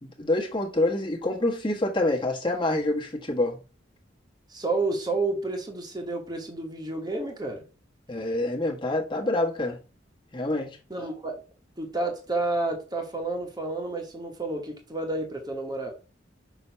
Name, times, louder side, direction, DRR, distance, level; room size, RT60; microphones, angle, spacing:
voice 1, 0.0-3.6 8.1-9.8 10.3-10.7, left 2 dB, 25° left, 1.4 m, -26 dB
voice 2, 4.5-7.6 10.9-11.3 11.8-15.9, right 2 dB, 20° right, 1.2 m, -30 dB
6.1 x 2.9 x 5.6 m
head